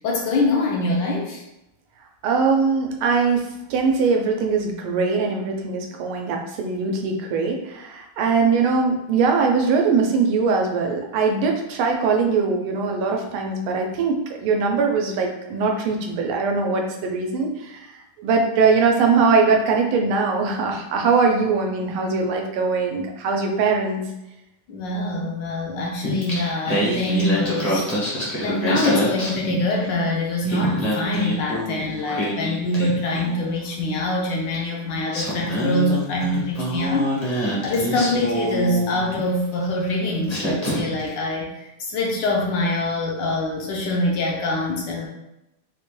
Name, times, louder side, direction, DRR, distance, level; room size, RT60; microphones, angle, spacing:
voice 1, 0.0-1.4 24.7-45.1, left 1 dB, 75° left, -1 dB, 1.1 m, -24 dB
voice 2, 2.2-3.4 3.7-17.9 18.2-24.0, right 4 dB, 90° right, 2 dB, 1.5 m, -21 dB
Singing, 26.0-30.0 30.3-33.5 34.5-34.6 35.1-39.3 39.9-40.0 40.3-41.1, equal, 40° left, 0.5 m, -26 dB
4.3 x 2.1 x 3.0 m, 0.90 s
omnidirectional pair, 2.3 m